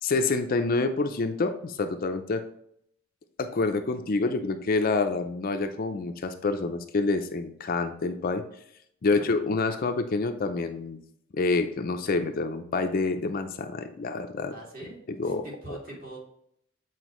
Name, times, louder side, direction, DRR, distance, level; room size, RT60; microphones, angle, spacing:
voice 1, 0.0-2.4 3.4-8.4 9.0-11.0 11.3-14.5 15.2-15.8, left 3 dB, 40° left, 7 dB, 0.4 m, -27 dB
voice 2, 14.5-16.2, right 1 dB, 40° right, -4 dB, 2.3 m, -43 dB
8.1 x 4.5 x 3.0 m, 0.71 s
head